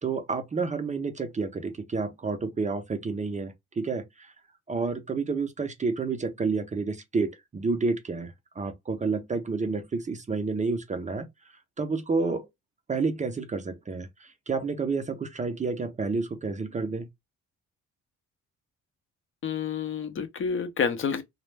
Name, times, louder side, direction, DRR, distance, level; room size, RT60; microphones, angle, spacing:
voice 1, 0.0-4.3 4.7-11.3 11.8-12.5 12.9-17.1, right 4 dB, 25° right, 0.5 m, -30 dB
voice 2, 19.4-21.2, left 6 dB, 45° left, 0.6 m, -29 dB
2.2 x 2.0 x 3.2 m
cardioid pair, 90°, 30 cm